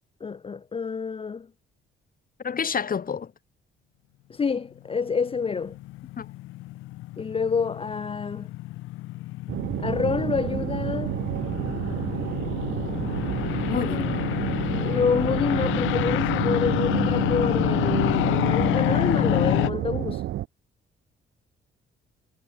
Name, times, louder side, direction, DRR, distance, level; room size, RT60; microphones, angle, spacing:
voice 1, 0.2-1.5 4.3-5.8 7.2-8.5 9.8-11.2 13.8-14.1 14.7-20.2, left 5 dB, 30° left, 0.6 m, -28 dB
voice 2, 2.4-3.3 6.2-6.3 13.7-14.0, left 6 dB, 45° left, 4.6 m, -28 dB
sound 1, 5.1-19.7, left 17 dB, 90° left, 0.7 m, -28 dB
sound 2, 9.5-20.5, right 13 dB, 75° right, 1.1 m, -30 dB
cardioid pair, 90°, 20 cm